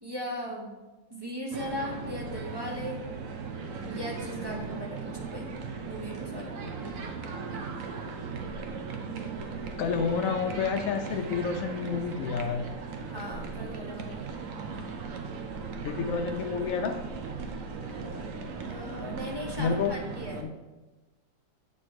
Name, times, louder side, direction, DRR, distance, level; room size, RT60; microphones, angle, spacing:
voice 1, 0.0-0.7 1.1-3.0 3.8-5.5 5.9-6.5 13.1-14.2 18.7-20.4, equal, 20° right, -2 dB, 0.8 m, -37 dB
sound 1, 1.5-20.4, right 4 dB, 60° right, 0.9 m, -37 dB
voice 2, 9.8-12.7 15.8-16.9 19.6-20.0 20.4-20.5, left 6 dB, 85° left, 5 dB, 0.7 m, -29 dB
8.0 x 4.3 x 4.6 m, 1.1 s
omnidirectional pair, 2.1 m